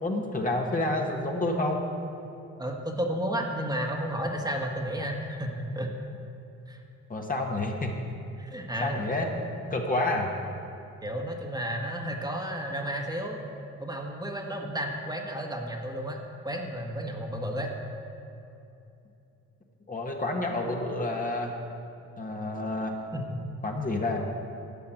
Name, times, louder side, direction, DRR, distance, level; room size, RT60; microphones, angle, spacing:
voice 1, 0.0-1.8 7.1-7.9 8.8-9.3 9.7-10.3 19.9-21.5 22.2-22.9 23.6-24.2, left 2 dB, 25° left, 1 dB, 1.4 m, -29 dB
voice 2, 2.6-5.9 6.7-6.8 8.4-9.0 11.0-13.4 13.8-16.2 16.4-17.7 23.1-23.4, right 1 dB, 15° right, 1 dB, 1.5 m, -32 dB
12.0 x 5.7 x 9.1 m, 2.8 s
cardioid pair, 90°, 30 cm